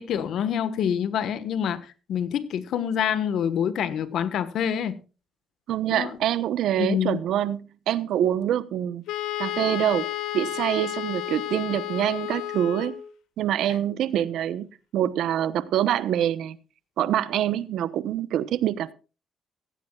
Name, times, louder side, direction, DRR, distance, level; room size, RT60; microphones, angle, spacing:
voice 1, 0.0-5.0 5.9-6.2 6.8-7.2 13.7-13.8, left 8 dB, 75° left, 1.4 m, -26 dB
voice 2, 5.7-9.0 9.4-10.1 10.3-12.9 13.4-14.7 14.9-16.6 17.0-18.9, right 11 dB, 80° right, 0.9 m, -25 dB
Wind instrument woodwind instrument, 9.1-13.1, left 13 dB, 90° left, 1.5 m, -32 dB
16.5 x 15.5 x 2.4 m
cardioid pair, 90°, 0 cm